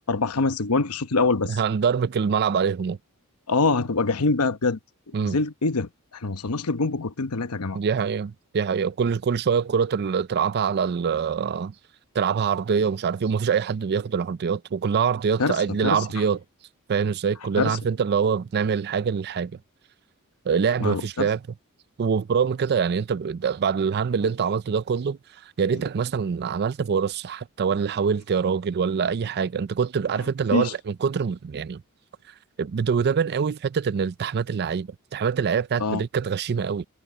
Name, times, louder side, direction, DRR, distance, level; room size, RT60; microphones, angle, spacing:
voice 1, 0.1-1.6 3.5-4.8 5.2-5.9 6.2-7.8 15.4-16.0 17.6-17.8 20.8-21.3 30.5-30.7 35.8-36.0, left 3 dB, 85° left, 1.0 m, -24 dB
voice 2, 1.5-3.0 5.1-5.4 7.7-11.7 12.1-16.4 16.9-19.5 20.5-21.4 22.0-25.2 25.6-31.8 32.6-36.8, right 6 dB, 50° right, 0.4 m, -24 dB
head